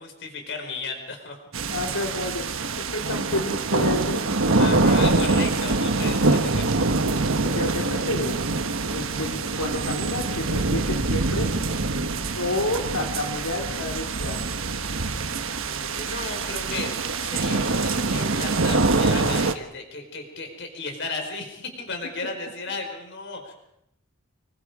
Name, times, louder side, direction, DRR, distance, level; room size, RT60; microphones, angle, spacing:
voice 1, 0.0-1.4 4.6-6.7 15.7-23.5, left 3 dB, 55° left, 4 dB, 4.7 m, -34 dB
sound 1, 1.5-19.5, right 3 dB, 60° right, 1.3 m, -24 dB
voice 2, 1.7-4.5 7.4-8.4 8.9-11.5 12.4-14.5, left 1 dB, 85° left, 0 dB, 2.8 m, -30 dB
27.0 x 22.5 x 4.9 m, 0.82 s
head